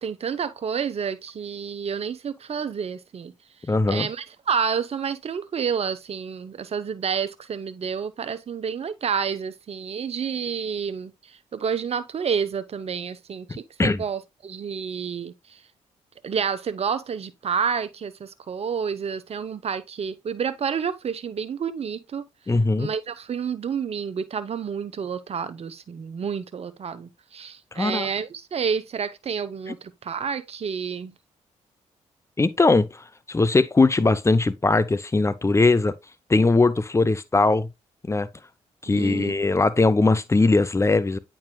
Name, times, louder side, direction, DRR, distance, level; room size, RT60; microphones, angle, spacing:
voice 1, 0.0-3.3 3.9-15.6 16.2-22.2 22.8-31.1 38.9-39.3, right 6 dB, 50° right, 0.8 m, -29 dB
voice 2, 3.7-4.1 13.5-14.0 22.5-22.9 27.8-28.1 29.7-29.8 32.4-35.9 36.3-37.7 38.1-38.3 38.8-41.2, left 3 dB, 20° left, 0.7 m, -20 dB
8.7 x 4.8 x 2.3 m
supercardioid pair, 60°, 14 cm